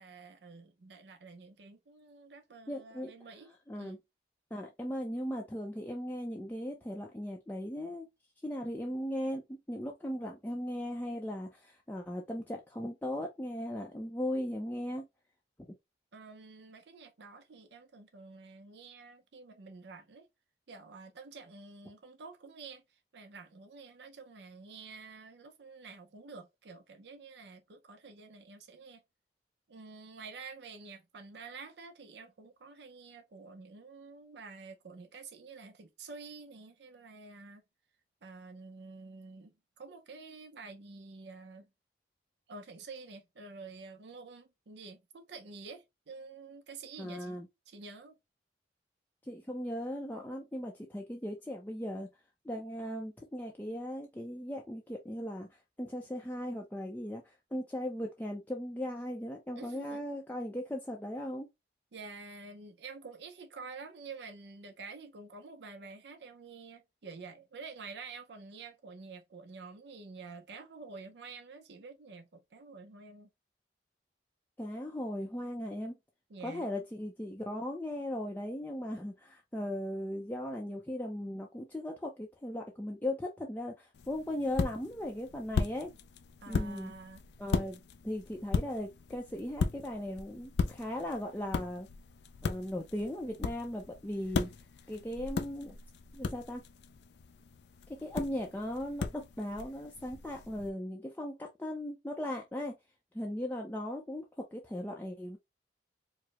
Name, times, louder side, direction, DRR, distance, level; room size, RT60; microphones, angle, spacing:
voice 1, 0.0-4.0 16.1-20.3 20.7-29.0 29.7-37.6 38.2-41.7 42.5-47.4 47.7-48.1 59.6-60.1 61.9-73.3 76.3-76.9 86.4-87.2, right 4 dB, 70° right, 0.5 m, -49 dB
voice 2, 2.7-3.1 3.7-4.0 4.5-8.1 8.4-15.1 47.0-47.5 49.2-52.1 52.4-61.5 74.6-75.9 76.4-85.9 86.5-86.9 87.4-91.9 92.4-94.5 94.9-95.8 96.1-96.6 98.0-102.8 103.1-104.3 104.5-105.4, left 1 dB, 10° left, 0.5 m, -38 dB
sound 1, 83.9-100.7, left 4 dB, 70° left, 0.4 m, -37 dB
4.7 x 2.0 x 2.9 m
head